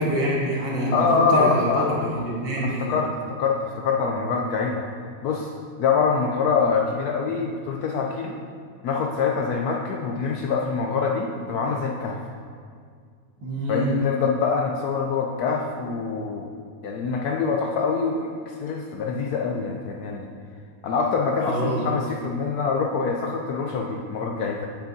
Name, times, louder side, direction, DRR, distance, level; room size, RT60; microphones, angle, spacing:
voice 1, 0.0-3.0 13.4-14.0 21.4-21.9, equal, 90° right, -5 dB, 2.3 m, -26 dB
voice 2, 0.9-2.0 2.6-4.8 5.2-5.5 5.8-8.4 8.8-12.2 13.7-16.5 16.8-20.3 20.8-24.7, left 5 dB, 70° left, 1 dB, 1.0 m, -25 dB
8.7 x 7.9 x 2.7 m, 2.1 s
omnidirectional pair, 1.9 m